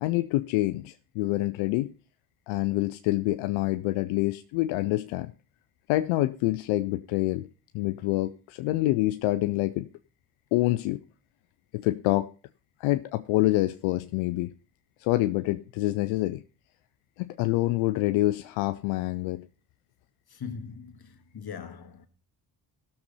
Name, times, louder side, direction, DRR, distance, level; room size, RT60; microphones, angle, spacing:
voice 1, 0.0-1.9 2.5-5.3 5.9-7.5 7.7-9.9 10.5-11.0 11.7-12.3 12.8-14.5 15.0-16.4 17.2-19.4, left 17 dB, 85° left, 0.6 m, -26 dB
voice 2, 20.3-22.1, left 6 dB, 50° left, 1.9 m, -40 dB
16.5 x 6.8 x 4.1 m
supercardioid pair, 45°, 46 cm